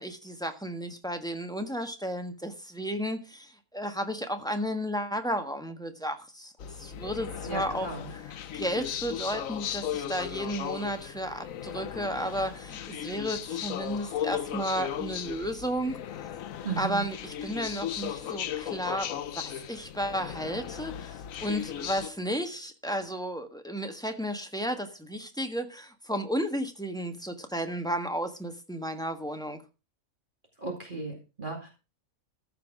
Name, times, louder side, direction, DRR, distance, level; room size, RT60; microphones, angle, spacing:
voice 1, 0.0-7.9 8.5-16.0 16.8-17.1 17.4-29.6, equal, 5° left, 6 dB, 1.3 m, -33 dB
sound 1, 6.6-22.1, left 10 dB, 70° left, 1.1 m, -36 dB
voice 2, 7.5-8.1 16.6-17.1 30.6-31.7, right 4 dB, 35° right, 1 dB, 2.6 m, -35 dB
14.5 x 5.8 x 6.0 m, 0.31 s
omnidirectional pair, 1.5 m